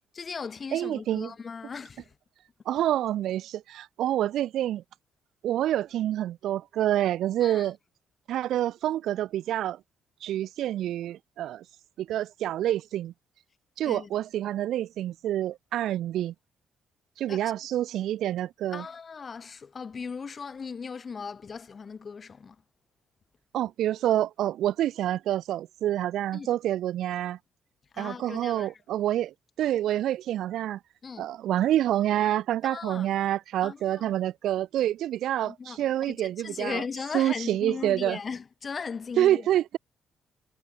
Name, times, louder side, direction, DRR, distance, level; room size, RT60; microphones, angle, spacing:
voice 1, 0.1-2.1 7.4-7.7 13.8-14.1 17.3-17.6 18.7-22.6 26.3-26.5 27.9-28.7 31.0-31.3 32.6-33.1 33.6-34.2 35.4-36.2 36.4-39.4, left 5 dB, 40° left, 1.9 m, -38 dB
voice 2, 0.7-1.3 2.6-4.8 5.4-7.8 8.3-9.8 10.2-11.6 12.0-13.1 13.8-16.3 17.2-18.9 23.5-27.4 28.0-30.8 31.2-36.8 37.1-38.2 39.2-39.8, right 12 dB, 80° right, 1.2 m, -27 dB
cardioid pair, 90°, 0 cm